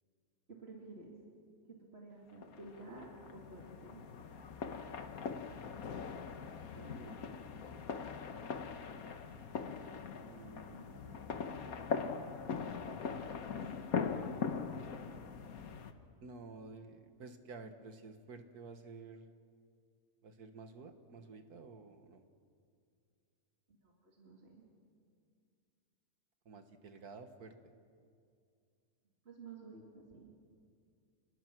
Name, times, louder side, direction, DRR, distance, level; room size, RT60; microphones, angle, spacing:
voice 1, 0.5-1.1 1.7-4.0 23.8-24.7 29.2-30.3, right 3 dB, 40° right, -2 dB, 2.9 m, -52 dB
sound 1, 2.4-15.9, left 5 dB, 70° left, 1.6 m, -41 dB
voice 2, 6.8-7.4 10.2-11.9 16.2-19.3 20.2-22.2 26.5-27.7, right 3 dB, 85° right, 7 dB, 2.0 m, -52 dB
29.5 x 21.0 x 6.2 m, 2.3 s
omnidirectional pair, 1.6 m